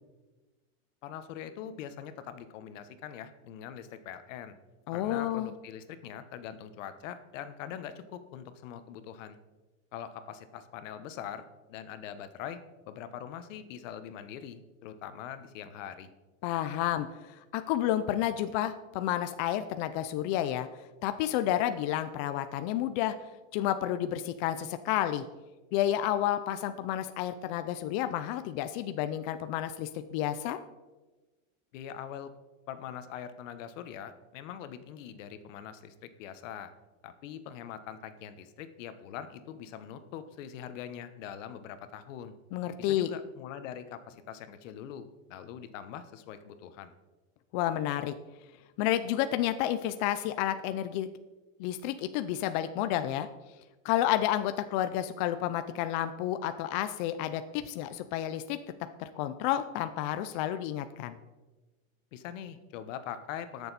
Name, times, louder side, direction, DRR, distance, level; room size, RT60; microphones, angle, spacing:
voice 1, 1.0-4.6 4.9-9.4 9.9-12.6 12.9-16.1 31.7-32.3 32.7-35.9 36.2-36.7 37.0-42.3 42.8-46.9 62.1-63.7, left 9 dB, 65° left, 11 dB, 1.2 m, -43 dB
voice 2, 4.9-5.5 16.4-20.7 21.0-23.2 23.5-25.2 25.7-30.6 42.5-43.1 47.5-48.1 48.8-51.1 51.6-53.3 53.8-58.6 59.0-61.2, left 12 dB, 35° left, 10 dB, 0.4 m, -30 dB
19.5 x 6.9 x 4.1 m, 1.2 s
supercardioid pair, 160°, 40 cm